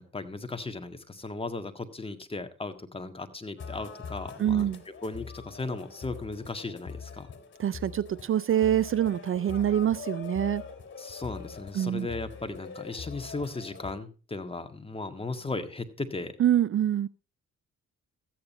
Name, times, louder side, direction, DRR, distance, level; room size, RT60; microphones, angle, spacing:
voice 1, 0.0-4.7 5.0-7.3 11.0-16.3, left 3 dB, 20° left, 1.8 m, -36 dB
sound 1, 3.6-13.9, left 6 dB, 40° left, 3.4 m, -43 dB
voice 2, 4.4-4.8 7.6-10.6 11.8-12.1 16.4-17.1, right 10 dB, 45° right, 0.5 m, -25 dB
14.0 x 9.4 x 4.3 m
cardioid pair, 90°, 30 cm